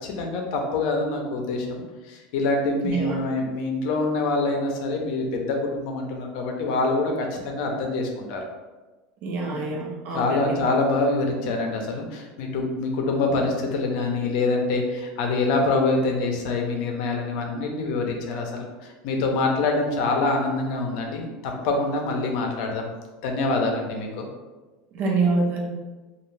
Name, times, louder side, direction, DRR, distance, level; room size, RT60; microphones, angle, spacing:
voice 1, 0.0-8.4 9.4-9.7 10.1-18.7 19.0-22.9 23.2-24.3, left 3 dB, 65° left, 2 dB, 0.6 m, -25 dB
voice 2, 2.8-3.2 9.2-10.6 24.9-25.7, right 3 dB, 50° right, -1 dB, 0.7 m, -26 dB
2.4 x 2.4 x 3.2 m, 1.2 s
supercardioid pair, 135°, 4 cm